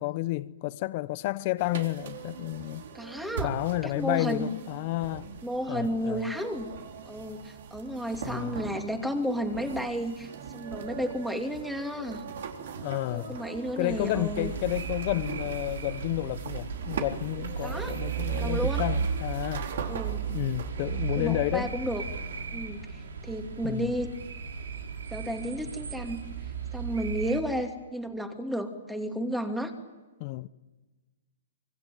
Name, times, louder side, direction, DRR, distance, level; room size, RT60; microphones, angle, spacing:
voice 1, 0.0-2.9 3.4-5.3 5.7-6.3 8.2-8.7 12.8-13.4 13.8-19.7 20.3-21.7 23.6-23.9 30.2-30.5, left 18 dB, 40° left, 0.8 m, -31 dB
sound 1, 1.6-20.7, right 6 dB, 65° right, 3.8 m, -41 dB
voice 2, 2.9-3.5 3.8-4.5 5.4-6.7 7.0-12.2 13.1-14.5 17.6-17.9 18.3-18.9 19.9-20.2 21.2-22.0 22.5-24.1 25.1-26.2 26.7-29.7, equal, ahead, 2.6 m, -32 dB
sound 2, 13.9-27.4, right 6 dB, 85° right, 4.1 m, -35 dB
25.5 x 24.5 x 9.3 m
hypercardioid pair, 150°, 0 cm